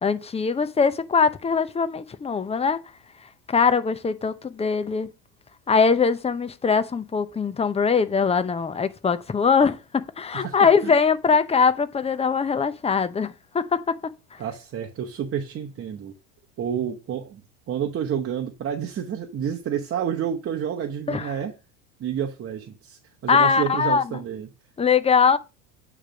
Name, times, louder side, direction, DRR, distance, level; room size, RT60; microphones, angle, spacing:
voice 1, 0.0-2.8 3.5-5.1 5.7-9.8 10.2-13.8 14.3-14.4 21.1-21.3 23.3-24.0 24.8-25.4, left 5 dB, 15° left, 0.6 m, -21 dB
voice 2, 10.3-10.9 14.4-16.1 16.6-17.4 17.7-21.5 22.0-24.5, right 8 dB, 30° right, 1.0 m, -29 dB
8.7 x 3.3 x 5.1 m
supercardioid pair, 95°, 42 cm